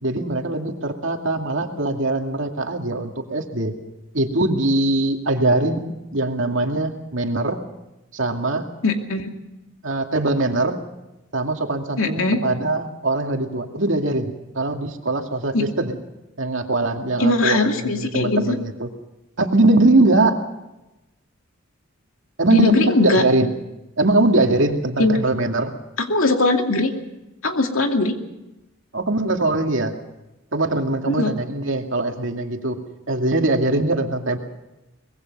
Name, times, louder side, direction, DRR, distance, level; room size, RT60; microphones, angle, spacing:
voice 1, 0.0-3.7 4.1-7.6 8.1-8.7 9.8-10.8 11.3-16.0 16.4-18.9 19.4-20.4 22.4-23.5 24.0-25.7 28.9-29.9 30.5-32.8 33.1-34.4, right 2 dB, 70° right, 3 dB, 2.4 m, -21 dB
voice 2, 8.8-9.3 12.0-12.4 15.5-15.6 17.2-18.6 22.5-23.3 25.0-25.1 26.0-26.9 27.4-28.2 31.1-31.3, left 2 dB, 85° left, 4 dB, 2.5 m, -19 dB
24.0 x 20.5 x 5.5 m, 0.96 s
head